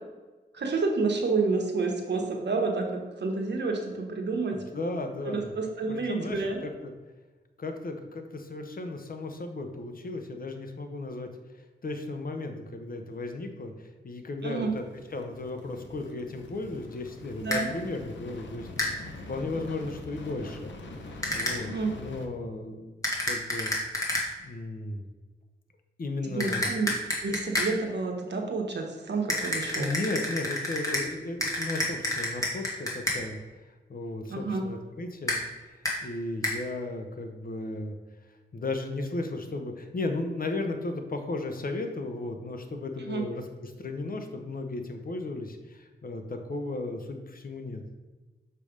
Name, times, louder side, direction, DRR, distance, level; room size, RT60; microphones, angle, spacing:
voice 1, 0.5-4.6 5.2-6.6 14.4-14.7 17.4-17.7 21.6-21.9 26.2-26.9 27.2-29.9 34.3-34.7 43.1-43.2, right 3 dB, 70° right, 1 dB, 1.2 m, -29 dB
voice 2, 4.7-5.5 5.9-6.9 7.6-11.3 11.8-14.8 15.1-23.7 24.4-25.0 26.0-26.7 29.8-33.4 33.9-35.4 35.7-37.9 38.5-47.8, left 2 dB, 50° left, 5 dB, 0.8 m, -35 dB
sound 1, 14.7-22.3, left 2 dB, 80° left, 0.9 m, -44 dB
sound 2, 17.5-17.6 18.8-18.9 21.2-21.6 23.0-24.3 26.4-27.7 29.3-31.1 31.4-33.2 35.3-35.4 35.9-36.0 36.4-36.6, left 1 dB, 20° left, 1.7 m, -29 dB
6.8 x 3.3 x 5.1 m, 1.2 s
cardioid pair, 65°, 19 cm